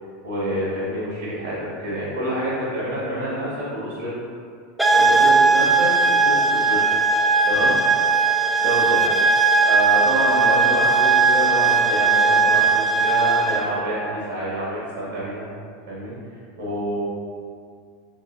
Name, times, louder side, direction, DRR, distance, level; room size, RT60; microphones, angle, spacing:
voice 1, 0.2-4.1 4.9-6.8 7.4-7.7 8.6-9.0 9.6-15.5 15.9-16.1 16.6-17.1, equal, 90° right, -9 dB, 0.9 m, -27 dB
sound 1, 4.8-13.7, right 4 dB, 5° right, 0.4 m, -18 dB
3.5 x 3.0 x 2.6 m, 2.2 s
hypercardioid pair, 85°, 0 cm